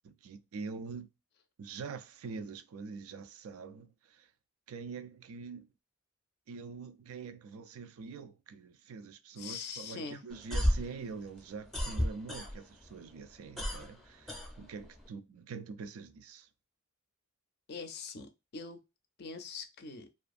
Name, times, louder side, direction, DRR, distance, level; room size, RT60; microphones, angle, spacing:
voice 1, 0.0-1.1 1.6-4.3 4.7-5.7 6.5-16.5, right 5 dB, 85° right, 0.4 m, -45 dB
voice 2, 9.4-10.2 17.7-18.8 19.2-20.1, left 5 dB, 50° left, 0.4 m, -43 dB
sound 1, 10.3-12.9 13.2-15.1, equal, ahead, 0.5 m, -33 dB
2.4 x 2.4 x 2.4 m
head